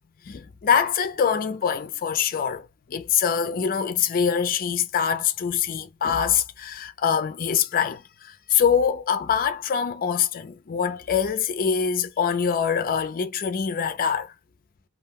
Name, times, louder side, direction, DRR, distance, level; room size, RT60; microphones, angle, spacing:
voice 1, 0.3-14.3, left 7 dB, 40° left, 0.4 m, -24 dB
2.3 x 2.1 x 3.4 m
head